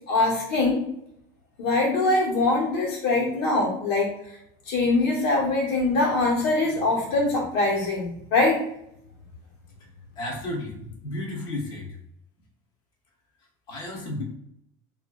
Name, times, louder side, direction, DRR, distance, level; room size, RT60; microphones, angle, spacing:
voice 1, 0.1-0.8 1.6-4.1 4.7-8.6, left 2 dB, 75° left, -3 dB, 1.2 m, -23 dB
voice 2, 10.2-12.0 13.7-14.2, left 1 dB, 40° left, 0 dB, 0.7 m, -33 dB
2.7 x 2.5 x 2.3 m, 0.76 s
cardioid pair, 180°, 12 cm